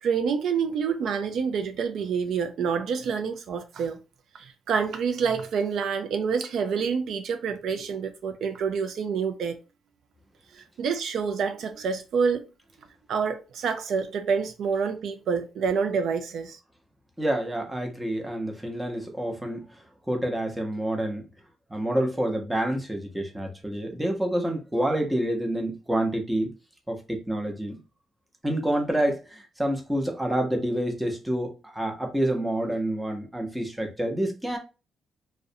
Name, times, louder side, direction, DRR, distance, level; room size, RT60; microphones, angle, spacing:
voice 1, 0.0-4.0 4.3-9.6 10.5-12.5 13.1-16.6, right 6 dB, 70° right, 0.3 m, -27 dB
voice 2, 17.2-19.6 20.1-21.2 21.7-26.5 26.9-27.8 28.4-34.6, right 1 dB, 5° right, 0.7 m, -28 dB
2.4 x 2.1 x 2.6 m
cardioid pair, 90°, 0 cm